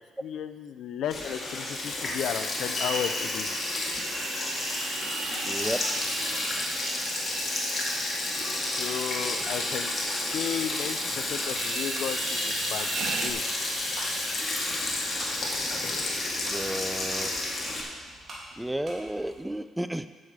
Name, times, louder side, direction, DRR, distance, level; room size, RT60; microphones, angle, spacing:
voice 1, 0.2-3.5 8.7-10.0 10.3-13.4, left 9 dB, 75° left, 11 dB, 0.5 m, -34 dB
Sink (filling or washing), 1.1-17.8, left 2 dB, 40° left, 2.2 m, -31 dB
sound 1, 3.4-13.3, right 5 dB, 75° right, 0.9 m, -38 dB
voice 2, 5.4-5.8 16.4-17.3 18.6-20.1, right 1 dB, 5° right, 12 dB, 0.4 m, -32 dB
sound 2, 9.0-19.4, right 1 dB, 55° right, 3.0 m, -47 dB
9.8 x 7.5 x 5.1 m, 1.5 s
cardioid pair, 90°, 0 cm